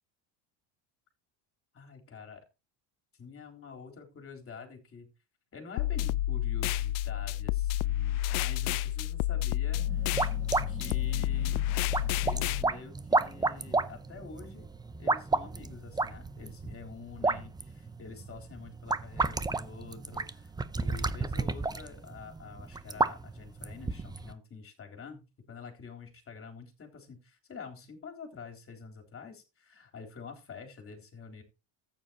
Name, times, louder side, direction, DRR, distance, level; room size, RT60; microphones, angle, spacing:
voice 1, 1.7-2.4 3.2-5.1 5.5-10.1 10.7-11.6 12.2-14.7 15.0-31.4, left 5 dB, 30° left, 3 dB, 3.6 m, -47 dB
sound 1, 5.8-12.6, left 13 dB, 80° left, 0.6 m, -30 dB
sound 2, 9.8-24.3, right 3 dB, 10° right, 0.6 m, -32 dB
14.5 x 9.3 x 2.9 m, 0.28 s
cardioid pair, 130°, 45 cm